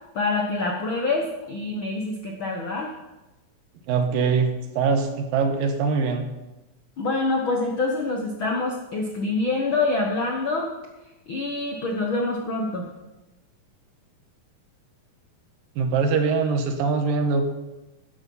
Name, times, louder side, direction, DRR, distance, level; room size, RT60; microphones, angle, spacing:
voice 1, 0.1-2.9 7.0-10.7 11.3-12.9, left 3 dB, 65° left, 1 dB, 1.2 m, -26 dB
voice 2, 3.9-6.3 15.8-17.5, right 5 dB, 75° right, 6 dB, 2.9 m, -23 dB
13.0 x 11.0 x 5.5 m, 1.1 s
omnidirectional pair, 4.0 m